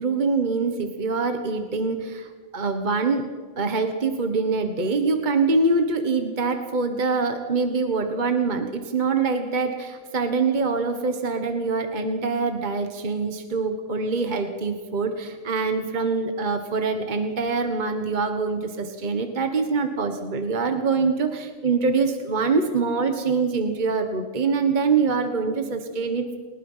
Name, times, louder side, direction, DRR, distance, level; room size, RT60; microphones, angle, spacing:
voice 1, 0.0-3.3 3.6-26.4, right 4 dB, 35° right, 6 dB, 1.5 m, -24 dB
29.0 x 20.0 x 5.6 m, 1.5 s
omnidirectional pair, 1.4 m